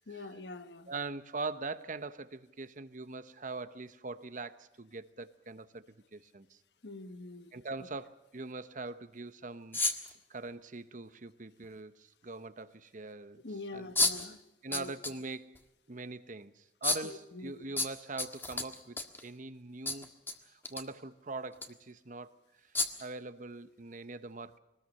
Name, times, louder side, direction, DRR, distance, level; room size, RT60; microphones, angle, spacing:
voice 1, 0.1-0.9 6.8-7.5 13.4-14.4 14.7-14.9 17.0-17.6, left 2 dB, 70° left, 1.3 m, -44 dB
voice 2, 0.9-5.9 6.1-6.6 7.5-9.8 10.3-13.4 13.7-13.9 14.6-15.6 15.9-20.1 20.4-22.3 23.0-24.6, right 3 dB, 45° right, 1.0 m, -42 dB
sound 1, 9.7-10.1 11.6-11.7 14.0-14.3 14.7-15.2 15.6-15.7 16.8-17.1 17.8-19.2 19.9-20.3 20.6-20.8 21.5-21.7 22.8-23.1, left 3 dB, 10° left, 1.5 m, -31 dB
24.0 x 19.5 x 6.6 m
head